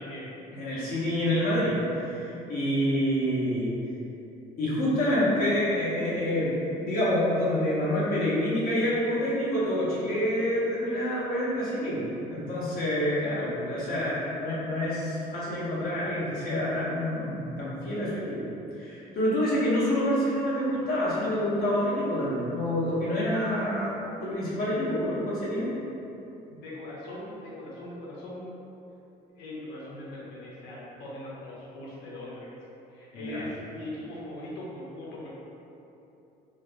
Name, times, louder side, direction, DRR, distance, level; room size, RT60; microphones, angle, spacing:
voice 1, 0.0-0.6 26.5-28.5 29.4-32.5 32.9-35.3, left 1 dB, 90° left, -5 dB, 0.9 m, -40 dB
voice 2, 0.6-3.7 4.6-18.5 18.8-23.9 24.2-25.7 33.1-33.4, equal, 60° left, -9 dB, 1.2 m, -27 dB
3.9 x 2.0 x 3.4 m, 2.9 s
cardioid pair, 110°, 17 cm